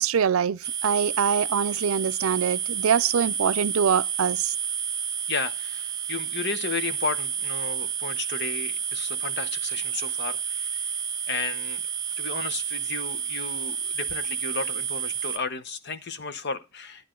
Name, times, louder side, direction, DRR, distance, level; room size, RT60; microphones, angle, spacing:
voice 1, 0.0-4.5, right 7 dB, 90° right, 0.5 m, -24 dB
sound 1, 0.6-15.4, right 8 dB, 15° right, 1.2 m, -30 dB
voice 2, 5.3-10.9 11.3-11.8 12.2-17.1, left 4 dB, 55° left, 0.8 m, -33 dB
10.5 x 10.0 x 3.8 m
head